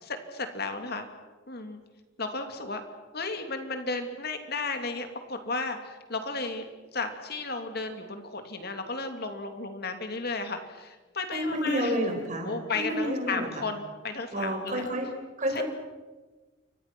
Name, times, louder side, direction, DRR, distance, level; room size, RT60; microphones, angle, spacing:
voice 1, 0.0-1.1 1.5-1.8 2.2-2.8 3.1-6.7 6.9-11.9 12.4-14.8 15.5-15.6, left 3 dB, 50° left, 6 dB, 2.6 m, -34 dB
voice 2, 11.3-13.6 14.3-15.1 15.4-15.6, equal, 40° right, 3 dB, 5.8 m, -30 dB
29.5 x 24.5 x 6.1 m, 1.3 s
head